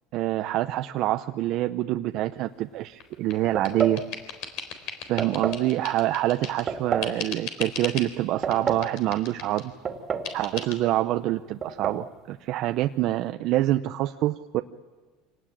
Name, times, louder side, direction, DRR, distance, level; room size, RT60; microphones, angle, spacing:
voice 1, 0.1-4.0 5.1-9.7 10.3-14.6, right 15 dB, 60° right, 8 dB, 0.7 m, -26 dB
sound 1, 3.0-6.7 7.0-8.1 8.5-9.7 10.2-10.8, left 7 dB, 65° left, 4.0 m, -37 dB
sound 2, 3.6-4.0 5.2-5.7 6.7-7.2 8.2-8.9 9.9-10.4 10.6-10.7 11.6-12.0, right 6 dB, 35° right, 2.4 m, -29 dB
25.5 x 19.0 x 8.9 m, 1.4 s
supercardioid pair, 120°, 0 cm